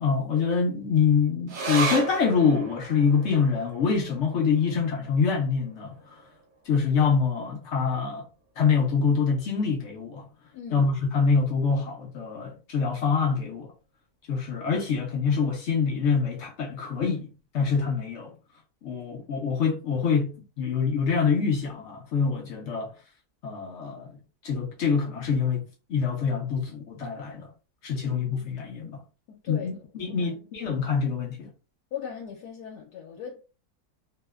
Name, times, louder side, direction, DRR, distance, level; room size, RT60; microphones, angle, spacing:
voice 1, 0.0-6.2 6.7-8.3 8.6-10.3 10.7-13.7 14.3-17.3 17.5-18.3 18.8-22.9 23.4-24.1 24.4-27.5 27.8-29.0 29.5-29.7 30.0-31.5, left 5 dB, 70° left, 0.7 m, -25 dB
sound 1, 1.5-8.3 8.6-8.7 9.0-9.7 10.2-10.3, right 3 dB, 65° right, 0.5 m, -36 dB
voice 2, 10.5-10.9 28.0-28.6 29.3-29.8 30.2-30.4 31.9-33.4, left 7 dB, 85° left, 1.2 m, -39 dB
2.9 x 2.0 x 2.2 m
omnidirectional pair, 1.7 m